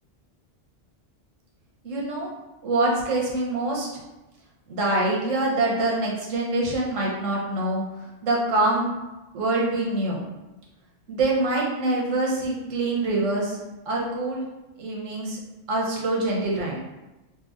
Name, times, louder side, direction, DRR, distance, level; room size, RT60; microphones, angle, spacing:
voice 1, 1.8-2.3 2.6-3.9 4.7-7.8 8.2-8.9 9.3-10.2 11.1-13.6 13.9-14.4 14.8-15.4 15.7-16.8, right 2 dB, 90° right, -3 dB, 1.2 m, -25 dB
4.2 x 2.8 x 2.4 m, 1.0 s
omnidirectional pair, 1.3 m